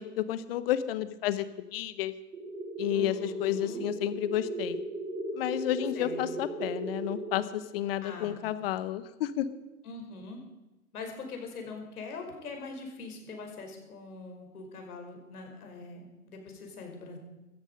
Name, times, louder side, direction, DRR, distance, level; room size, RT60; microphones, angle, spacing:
voice 1, 0.0-2.1 2.8-4.8 5.3-9.4, left 12 dB, 40° left, 14 dB, 1.1 m, -31 dB
sound 1, 2.3-7.3, right 1 dB, 65° right, 2.7 m, -36 dB
voice 2, 2.9-3.8 6.0-6.4 8.0-8.4 9.8-10.4 10.9-17.2, left 3 dB, 70° left, 3 dB, 5.2 m, -43 dB
16.5 x 13.5 x 5.3 m, 1.0 s
hypercardioid pair, 135°, 46 cm